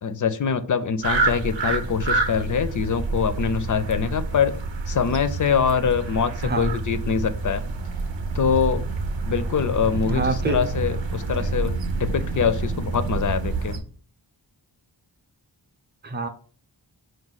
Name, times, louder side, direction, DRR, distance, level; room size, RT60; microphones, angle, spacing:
voice 1, 0.0-4.6 4.9-7.6 8.3-8.8 9.2-13.8, left 6 dB, 45° left, 12 dB, 0.4 m, -24 dB
sound 1, 1.0-13.8, right 3 dB, 85° right, 0.7 m, -28 dB
voice 2, 6.4-6.7 10.0-10.6 11.4-11.5 16.0-16.3, right 2 dB, 25° right, 6 dB, 0.6 m, -26 dB
4.8 x 2.2 x 3.9 m, 0.42 s
wide cardioid pair, 90°, 44 cm